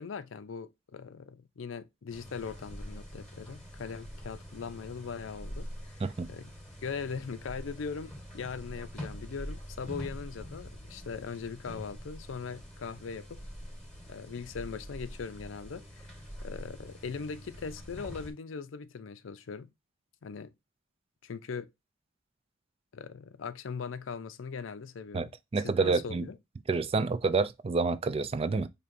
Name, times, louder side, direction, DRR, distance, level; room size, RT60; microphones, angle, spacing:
voice 1, 0.0-6.5 6.8-13.5 14.1-19.7 20.2-20.5 21.2-21.7 22.9-25.3 25.6-26.4, left 5 dB, 75° left, 0.5 m, -40 dB
sound 1, 2.1-18.3, equal, 5° left, 1.2 m, -45 dB
voice 2, 25.1-26.3 26.7-28.7, right 4 dB, 30° right, 0.3 m, -28 dB
4.6 x 2.8 x 2.6 m
head